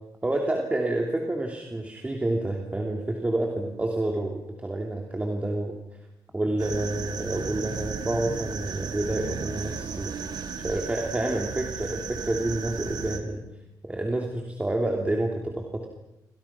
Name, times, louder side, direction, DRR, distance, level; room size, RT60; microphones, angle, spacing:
voice 1, 0.2-5.7 6.3-10.1 10.6-13.4 13.8-15.9, right 1 dB, 20° right, 1 dB, 3.0 m, -28 dB
sound 1, 6.6-13.2, right 6 dB, 65° right, 2.7 m, -35 dB
29.0 x 25.5 x 6.0 m, 0.91 s
cardioid pair, 115°, 8 cm